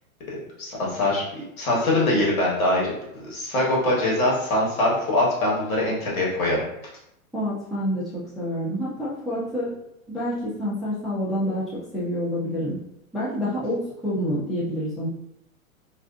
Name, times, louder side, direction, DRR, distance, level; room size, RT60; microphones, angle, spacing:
voice 1, 0.3-6.6, left 1 dB, 80° left, -4 dB, 1.4 m, -23 dB
voice 2, 7.3-9.7 10.1-12.8 13.1-15.1, equal, ahead, -9 dB, 0.4 m, -28 dB
2.5 x 2.3 x 2.4 m, 0.80 s
hypercardioid pair, 110°, 42 cm